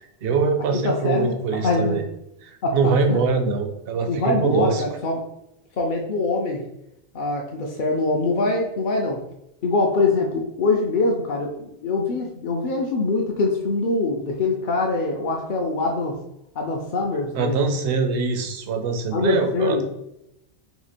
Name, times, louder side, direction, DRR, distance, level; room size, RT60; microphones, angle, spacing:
voice 1, 0.2-2.0 2.4-4.8 17.3-19.8, right 4 dB, 65° right, 5 dB, 0.7 m, -23 dB
voice 2, 0.8-2.0 2.6-3.2 4.1-5.2 5.8-6.6 7.1-9.2 9.6-16.2 16.6-17.6 19.1-19.8, left 3 dB, 60° left, 0 dB, 0.6 m, -23 dB
2.9 x 2.7 x 4.1 m, 0.84 s
omnidirectional pair, 1.2 m